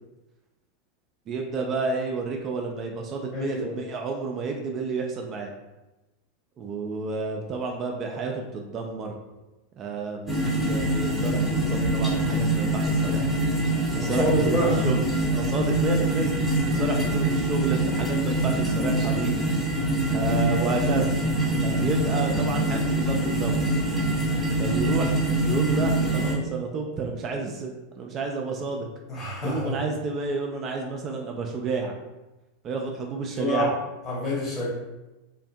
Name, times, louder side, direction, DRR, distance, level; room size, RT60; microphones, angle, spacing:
voice 1, 1.3-5.5 6.6-9.2 9.8-13.3 13.9-15.1 15.3-16.3 16.6-19.4 20.1-21.1 21.6-23.7 24.6-28.9 29.4-31.9 32.6-33.7, right 4 dB, 35° right, 1 dB, 0.3 m, -30 dB
voice 2, 3.3-3.7 13.9-14.8 16.7-17.0 29.1-29.8 33.4-33.7 34.0-34.7, equal, 25° left, -5 dB, 1.0 m, -27 dB
sound 1, 10.3-26.4, right 1 dB, 5° left, 0.7 m, -24 dB
2.5 x 2.5 x 2.2 m, 1.0 s
figure-of-eight pair, 85°, 0 cm